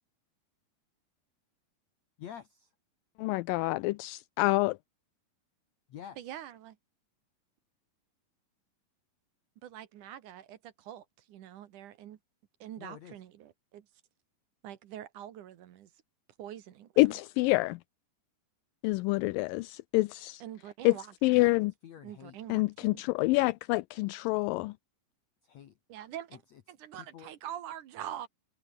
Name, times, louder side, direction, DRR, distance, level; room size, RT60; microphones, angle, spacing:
voice 1, 2.2-2.7 5.9-6.2 12.8-13.2 21.4-22.4 23.2-23.3 25.4-25.7 26.5-26.6 26.9-27.3, left 9 dB, 55° left, 2.2 m, -48 dB
voice 2, 3.2-4.8 17.0-17.8 18.8-20.4 20.8-21.0 21.2-21.7 22.5-24.7, left 22 dB, 80° left, 2.1 m, -27 dB
voice 3, 6.2-6.8 9.6-12.2 12.6-13.9 14.6-15.9 16.4-17.1 20.4-21.5 22.0-23.0 25.9-26.4 26.7-28.3, right 11 dB, 65° right, 2.5 m, -45 dB
omnidirectional pair, 4.3 m